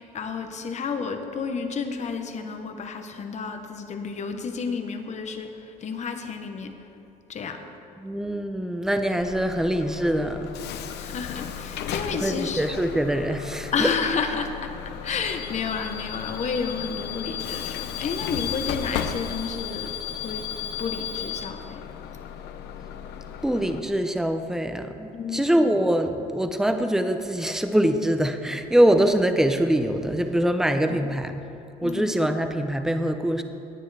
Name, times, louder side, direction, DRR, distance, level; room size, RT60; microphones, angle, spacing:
voice 1, 0.0-6.7 7.3-7.6 11.0-12.6 13.7-14.7 15.0-20.5 20.8-21.8 25.1-25.4 30.9-31.1 31.8-32.1, left 5 dB, 45° left, 6 dB, 1.1 m, -31 dB
voice 2, 8.0-10.5 12.2-13.9 23.4-31.4 31.8-33.4, right 1 dB, 5° right, 7 dB, 0.7 m, -23 dB
Bus / Alarm, 9.2-23.8, left 9 dB, 80° left, 0.7 m, -34 dB
18.0 x 9.0 x 3.4 m, 2.9 s
cardioid pair, 110°, 17 cm